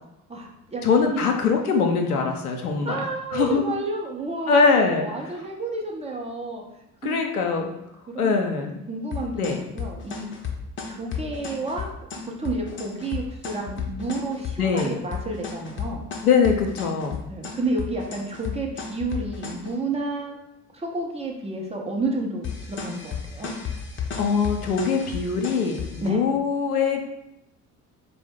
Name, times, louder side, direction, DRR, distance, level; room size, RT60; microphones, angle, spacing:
voice 1, 0.3-0.8 1.1-1.3 2.8-6.6 7.0-7.2 8.1-10.3 10.9-11.9 12.2-16.0 17.3-20.4 20.7-22.5 22.8-23.5 26.0-26.2, right 2 dB, 15° right, -1 dB, 0.6 m, -30 dB
voice 2, 0.8-3.0 3.3-3.6 4.5-5.4 7.0-7.7 8.1-8.8 9.4-9.6 14.6-15.0 16.2-17.2 24.2-27.0, left 5 dB, 80° left, 3 dB, 0.5 m, -22 dB
sound 1, 9.1-19.7 22.4-26.1, left 6 dB, 25° left, 0.6 m, -33 dB
4.2 x 2.0 x 3.5 m, 0.85 s
figure-of-eight pair, 50°, 43 cm